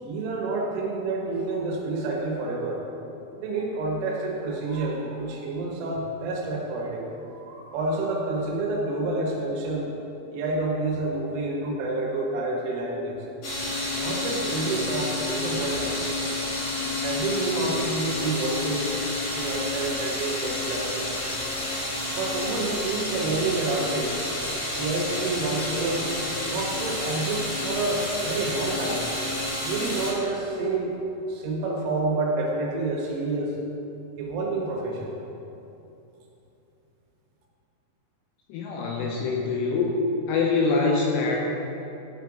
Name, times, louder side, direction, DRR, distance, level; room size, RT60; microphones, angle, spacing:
voice 1, 0.0-2.8 3.4-9.9 10.3-13.2 13.9-16.2 17.0-18.9 19.3-21.2 22.2-24.2 24.8-26.1 26.4-29.1 29.6-30.9 31.3-33.6 34.2-35.1, right 2 dB, 85° right, -1 dB, 3.8 m, -29 dB
sound 1, 13.4-30.1, left 2 dB, 45° left, 2.1 m, -30 dB
voice 2, 38.5-40.0 40.3-41.4, left 4 dB, 80° left, -1 dB, 2.6 m, -24 dB
12.5 x 5.3 x 4.8 m, 2.9 s
omnidirectional pair, 5.6 m